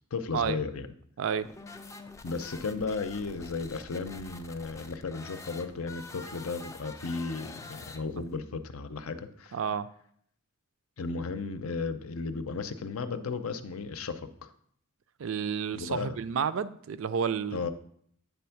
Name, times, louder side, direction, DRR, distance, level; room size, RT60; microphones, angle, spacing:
voice 1, 0.1-0.9 2.2-9.6 11.0-14.5 15.7-16.2 17.5-17.7, left 4 dB, 80° left, 10 dB, 0.6 m, -35 dB
sound 1, 1.4-8.4, left 3 dB, 15° left, 0.3 m, -47 dB
voice 2, 9.5-9.9 15.2-17.7, right 6 dB, 65° right, 13 dB, 0.4 m, -30 dB
8.4 x 3.4 x 5.8 m, 0.65 s
head